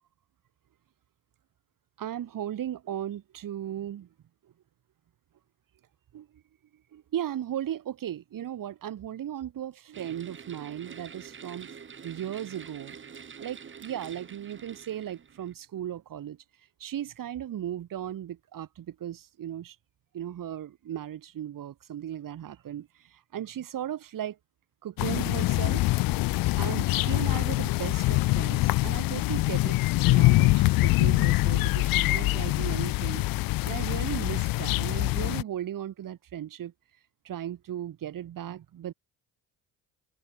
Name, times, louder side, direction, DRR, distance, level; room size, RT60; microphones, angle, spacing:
voice 1, 2.0-4.1 6.1-6.4 6.9-11.7 12.0-13.0 13.4-16.4 16.8-19.8 20.1-24.4 24.8-25.9 26.6-33.2 33.6-36.7 37.2-38.9, right 11 dB, 45° right, 1.4 m, -36 dB
sound 1, 9.9-15.5, right 6 dB, 25° right, 1.0 m, -46 dB
sound 2, 25.0-35.4, left 20 dB, 50° left, 0.5 m, -24 dB
open air
hypercardioid pair, 50°, 46 cm